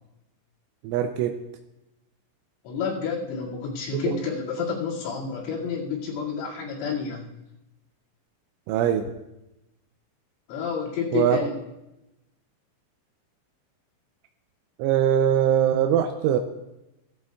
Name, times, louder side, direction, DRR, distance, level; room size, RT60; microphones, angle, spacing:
voice 1, 0.8-1.4 3.9-4.2 8.7-9.1 11.1-11.4 14.8-16.4, right 9 dB, 85° right, 6 dB, 3.0 m, -22 dB
voice 2, 2.6-7.3 10.5-11.5, left 6 dB, 85° left, -5 dB, 4.8 m, -29 dB
16.5 x 13.5 x 2.3 m, 0.93 s
omnidirectional pair, 5.7 m